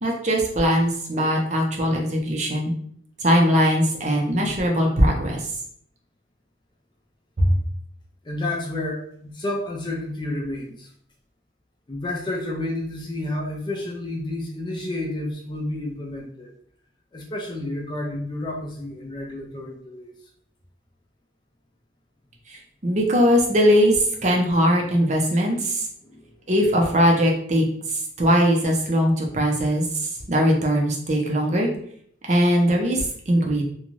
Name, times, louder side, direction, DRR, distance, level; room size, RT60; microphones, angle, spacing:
voice 1, 0.0-2.7 3.2-5.5 7.4-7.5 22.5-25.9 26.5-31.7 32.3-33.6, equal, 35° right, 0 dB, 0.5 m, -20 dB
voice 2, 8.2-10.9 11.9-16.5 17.1-20.2 26.0-26.3, left 1 dB, 25° left, 0 dB, 0.4 m, -30 dB
2.5 x 2.2 x 3.0 m, 0.64 s
head